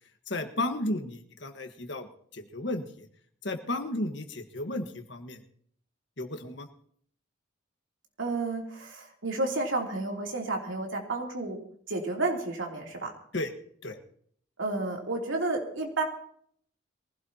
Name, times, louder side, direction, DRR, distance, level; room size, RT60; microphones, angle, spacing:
voice 1, 0.3-2.1 2.3-3.1 3.4-5.4 6.2-6.7 13.3-13.5 13.8-14.0, left 1 dB, 60° left, 6 dB, 1.4 m, -33 dB
voice 2, 8.2-11.6 11.9-13.1 14.6-16.0, right 2 dB, 80° right, 1 dB, 3.0 m, -31 dB
23.0 x 16.0 x 2.9 m, 0.62 s
head